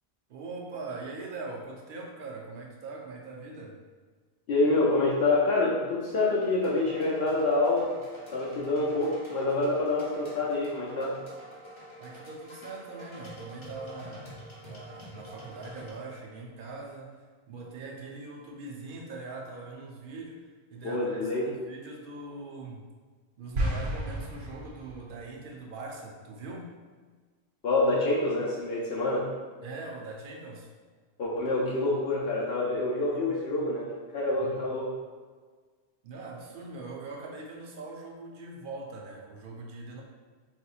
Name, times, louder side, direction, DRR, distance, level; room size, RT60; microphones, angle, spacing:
voice 1, 0.3-3.8 12.0-22.9 23.4-26.7 29.6-30.7 34.4-34.7 36.0-40.0, right 3 dB, 60° right, 0 dB, 0.7 m, -42 dB
voice 2, 4.5-7.9 8.3-11.2 20.8-21.4 27.6-29.3 31.2-33.9 34.1-34.9, left 2 dB, 70° left, -5 dB, 0.8 m, -27 dB
sound 1, 6.5-15.9, right 1 dB, 30° left, 0.7 m, -47 dB
sound 2, 23.5-25.2, right 1 dB, 90° right, 1.1 m, -32 dB
4.1 x 2.8 x 2.3 m, 1.5 s
omnidirectional pair, 1.1 m